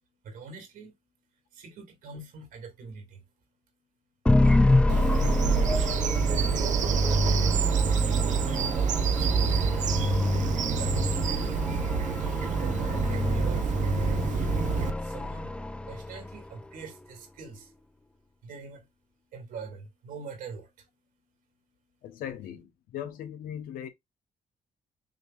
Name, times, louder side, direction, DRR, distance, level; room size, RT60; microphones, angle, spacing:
voice 1, 0.2-0.9 1.5-3.2 4.3-5.3 6.1-7.5 8.1-9.7 10.0-11.9 12.6-14.5 14.9-15.6 15.8-17.7 18.4-18.9 19.3-20.9, right 4 dB, 80° right, 2.2 m, -44 dB
sound 1, 4.3-16.4, left 2 dB, 5° left, 0.4 m, -27 dB
Bird vocalization bird call bird song, 4.9-14.9, right 6 dB, 60° right, 0.7 m, -27 dB
voice 2, 22.0-23.9, left 9 dB, 85° left, 1.0 m, -38 dB
6.3 x 3.0 x 2.4 m
cardioid pair, 100°, 14 cm